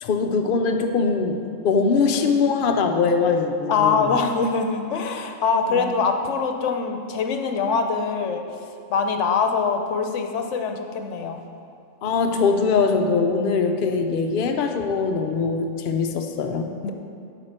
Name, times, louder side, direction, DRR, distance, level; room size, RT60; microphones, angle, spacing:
voice 1, 0.0-1.4 1.6-4.1 5.7-5.8 12.0-16.7, left 4 dB, 55° left, 4 dB, 0.7 m, -22 dB
voice 2, 3.7-8.4 8.9-11.4 16.8-16.9, left 5 dB, 70° left, 5 dB, 1.0 m, -23 dB
7.5 x 5.1 x 6.6 m, 2.5 s
omnidirectional pair, 1.3 m